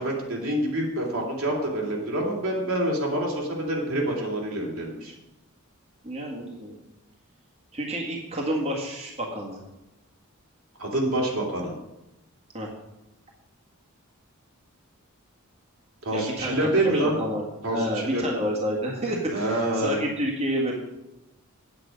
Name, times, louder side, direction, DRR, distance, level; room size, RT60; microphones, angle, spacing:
voice 1, 0.0-5.1 10.8-11.7 16.0-17.2 17.6-18.3 19.3-20.0, right 1 dB, 75° right, -2 dB, 2.7 m, -27 dB
voice 2, 6.0-6.8 7.7-9.6 12.5-12.7 16.1-17.4 17.7-20.7, equal, 30° right, -3 dB, 1.7 m, -29 dB
8.8 x 8.7 x 5.2 m, 0.97 s
head